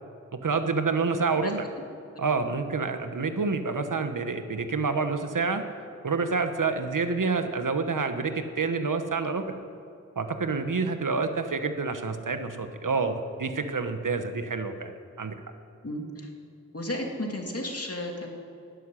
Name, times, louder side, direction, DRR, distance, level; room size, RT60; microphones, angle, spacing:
voice 1, 0.3-1.6 2.2-5.6 6.0-9.6 10.1-14.9 15.2-15.3, right 4 dB, 85° right, 8 dB, 1.2 m, -28 dB
voice 2, 15.8-16.3 16.7-18.3, left 1 dB, 50° left, 1 dB, 2.8 m, -33 dB
12.5 x 11.0 x 10.0 m, 2.7 s
wide cardioid pair, 55°, 31 cm